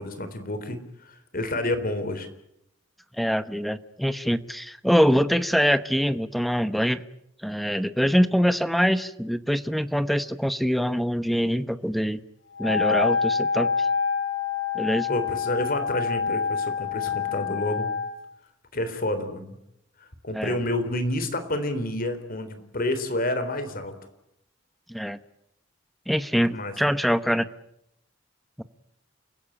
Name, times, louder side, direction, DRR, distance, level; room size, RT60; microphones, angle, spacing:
voice 1, 0.0-2.3 15.1-17.9 18.7-19.6 20.2-23.9 26.5-26.7, left 1 dB, 45° left, 10 dB, 3.7 m, -29 dB
voice 2, 3.2-7.0 7.4-12.2 12.6-13.9 14.7-15.1 20.3-20.6 24.9-25.2 26.1-27.5 28.6-28.7, equal, ahead, 12 dB, 1.0 m, -24 dB
Wind instrument woodwind instrument, 12.5-18.2, left 5 dB, 80° left, 4.1 m, -26 dB
30.0 x 16.5 x 8.8 m, 0.79 s
head